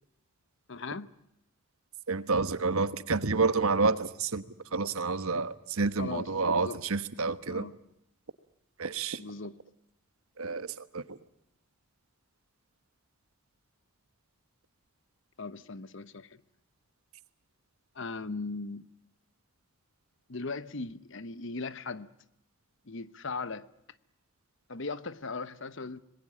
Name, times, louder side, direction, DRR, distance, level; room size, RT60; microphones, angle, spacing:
voice 1, 0.7-1.1 6.0-6.8 7.5-7.8 9.2-9.6 15.4-16.4 17.9-18.9 20.3-22.1 22.9-23.7 24.7-26.0, left 3 dB, 55° left, 1.0 m, -38 dB
voice 2, 2.1-4.4 4.7-7.7 8.8-9.2 10.4-10.7 10.9-11.0, right 4 dB, 75° right, 1.2 m, -29 dB
26.5 x 21.0 x 8.7 m
head